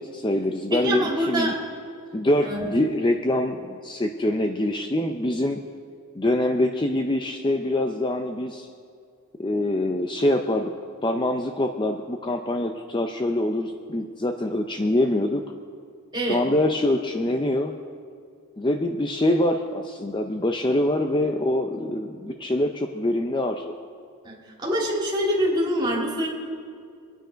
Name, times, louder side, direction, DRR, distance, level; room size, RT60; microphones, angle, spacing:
voice 1, 0.0-1.5 2.1-5.6 6.2-8.7 9.4-10.7 11.0-15.4 16.3-17.7 18.6-23.8, left 1 dB, 20° left, 4 dB, 0.6 m, -24 dB
voice 2, 0.7-1.6 2.4-2.7 16.1-16.4 24.2-26.3, equal, 20° right, -3 dB, 2.9 m, -25 dB
25.0 x 9.2 x 5.1 m, 2.3 s
head